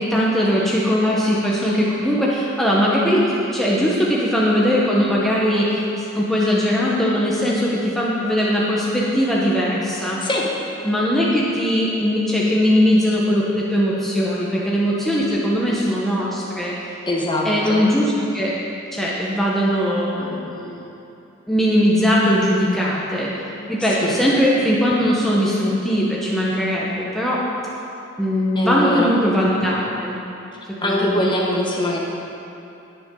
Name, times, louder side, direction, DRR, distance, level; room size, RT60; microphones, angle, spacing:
voice 1, 0.0-5.9 6.1-10.2 10.8-16.7 17.4-18.5 18.9-20.7 21.5-23.3 23.7-27.4 28.2-30.2 30.8-31.3, equal, ahead, -6 dB, 1.0 m, -20 dB
voice 2, 17.1-17.8 24.0-24.1 28.5-29.1 30.8-32.0, left 1 dB, 20° left, -2 dB, 1.2 m, -22 dB
18.5 x 7.0 x 3.8 m, 2.8 s
head